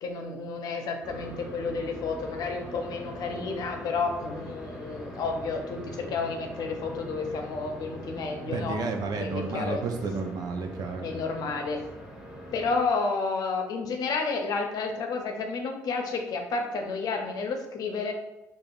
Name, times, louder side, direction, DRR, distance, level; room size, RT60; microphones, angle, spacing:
voice 1, 0.0-8.8 9.2-9.8 11.0-11.8 12.5-18.1, left 4 dB, 65° left, 4 dB, 0.7 m, -31 dB
sound 1, 1.0-12.8, equal, 10° right, 1.1 m, -42 dB
voice 2, 8.2-11.1, right 4 dB, 60° right, 5 dB, 0.6 m, -32 dB
5.1 x 2.4 x 2.4 m, 0.99 s
supercardioid pair, 70°, 7 cm